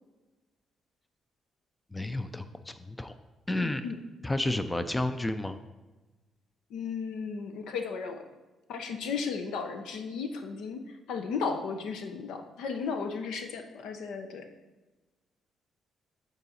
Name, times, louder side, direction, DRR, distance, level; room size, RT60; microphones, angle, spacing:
voice 1, 1.9-3.1 3.5-3.9 4.2-5.6, left 1 dB, 15° left, 10 dB, 0.4 m, -31 dB
voice 2, 6.7-8.2 8.7-10.8 11.1-14.4, left 5 dB, 85° left, 6 dB, 0.7 m, -34 dB
8.2 x 4.0 x 4.1 m, 1.2 s
cardioid pair, 90°, 0 cm